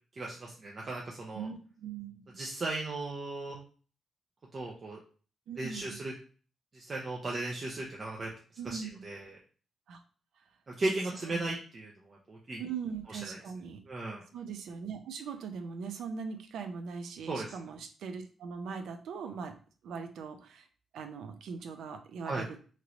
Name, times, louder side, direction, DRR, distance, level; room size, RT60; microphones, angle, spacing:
voice 1, 0.2-1.5 2.4-3.6 4.5-5.0 5.6-6.1 6.7-8.3 8.6-9.4 10.7-12.6 13.3-13.4 13.9-14.2 17.3-17.5 22.3-22.5, right 2 dB, 35° right, -2 dB, 0.5 m, -36 dB
voice 2, 1.3-2.4 5.5-6.0 8.6-9.0 9.9-10.0 11.1-11.5 12.6-13.8 14.3-19.5 19.8-20.7 20.9-22.6, right 6 dB, 90° right, 6 dB, 0.4 m, -40 dB
3.0 x 2.9 x 2.5 m, 0.40 s
wide cardioid pair, 150°, 0 cm